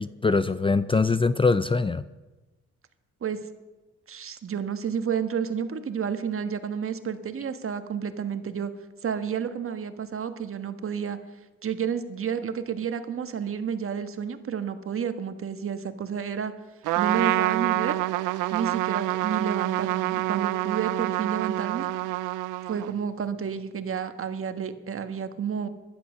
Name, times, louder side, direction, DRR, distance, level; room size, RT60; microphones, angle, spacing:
voice 1, 0.0-2.0, left 4 dB, 20° left, 14 dB, 0.5 m, -23 dB
voice 2, 4.1-8.7 9.0-11.2 11.6-16.5 17.0-18.0 18.5-21.9 22.7-25.7, right 7 dB, 45° right, 9 dB, 1.4 m, -30 dB
Trumpet, 16.8-23.0, right 18 dB, 90° right, 0.5 m, -27 dB
16.5 x 12.0 x 6.4 m, 1.1 s
cardioid pair, 90°, 30 cm